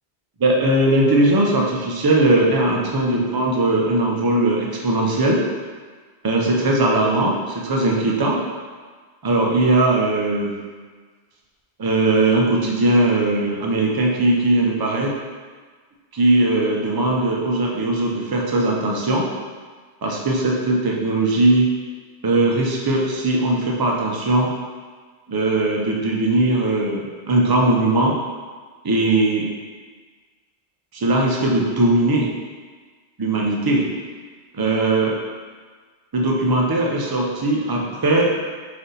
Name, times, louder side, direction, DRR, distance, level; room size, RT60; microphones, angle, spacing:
voice 1, 0.4-5.4 6.2-8.4 9.2-10.5 11.8-15.1 16.1-19.3 20.0-21.7 22.2-24.5 25.3-28.1 28.8-29.5 30.9-32.3 33.2-33.8 34.5-35.2 36.1-38.3, right 2 dB, 35° right, -2 dB, 0.4 m, -19 dB
4.1 x 2.6 x 3.9 m, 1.5 s
omnidirectional pair, 1.1 m